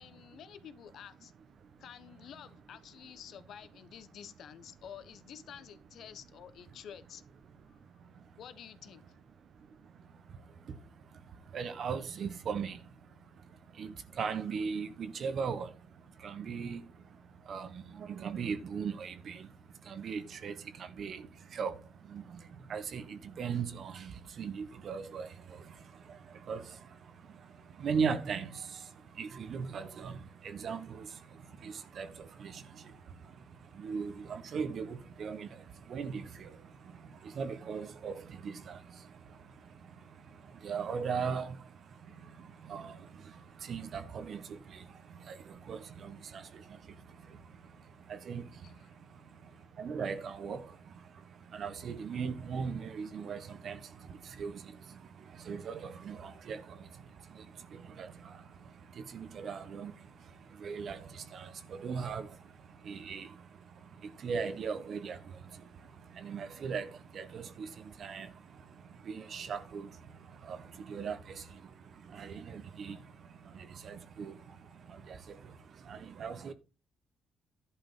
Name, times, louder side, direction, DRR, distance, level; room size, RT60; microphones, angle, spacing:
voice 1, 0.0-1.3 1.8-7.2 7.7-7.8 8.4-9.0 48.6-48.9, left 9 dB, 70° left, 1.1 m, -50 dB
voice 2, 7.7-8.4 9.3-76.5, right 6 dB, 60° right, 1.4 m, -40 dB
11.0 x 5.1 x 5.7 m
cardioid pair, 90°, 0 cm